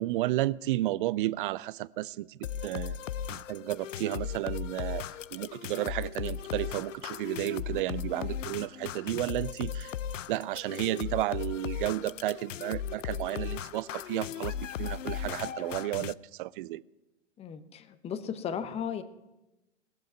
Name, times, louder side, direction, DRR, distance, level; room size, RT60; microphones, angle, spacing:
voice 1, 0.0-3.0 3.3-5.0 5.3-9.9 10.3-16.8, right 16 dB, 45° right, 0.5 m, -32 dB
sound 1, 2.4-16.1, left 9 dB, 80° left, 0.6 m, -37 dB
voice 2, 17.4-19.0, left 8 dB, 15° left, 0.8 m, -35 dB
17.5 x 7.7 x 9.3 m
hypercardioid pair, 115°, 37 cm